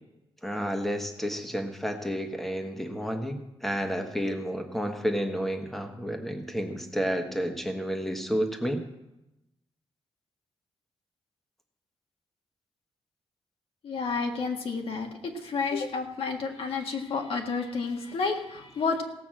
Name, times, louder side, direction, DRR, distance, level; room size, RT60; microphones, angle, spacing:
voice 1, 0.4-8.8, equal, ahead, 5 dB, 1.3 m, -31 dB
voice 2, 13.8-19.0, left 4 dB, 65° left, 2 dB, 1.6 m, -30 dB
17.0 x 5.9 x 7.6 m, 0.92 s
wide cardioid pair, 160°, 10 cm